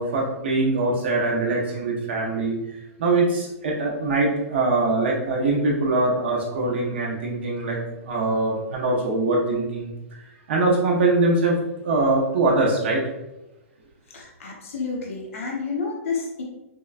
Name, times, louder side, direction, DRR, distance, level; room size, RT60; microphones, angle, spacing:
voice 1, 0.0-2.5 3.0-13.0, right 2 dB, 45° right, -3 dB, 0.6 m, -23 dB
voice 2, 14.1-16.4, left 4 dB, 60° left, -1 dB, 0.8 m, -30 dB
4.3 x 2.1 x 2.4 m, 0.97 s
hypercardioid pair, 175°, 8 cm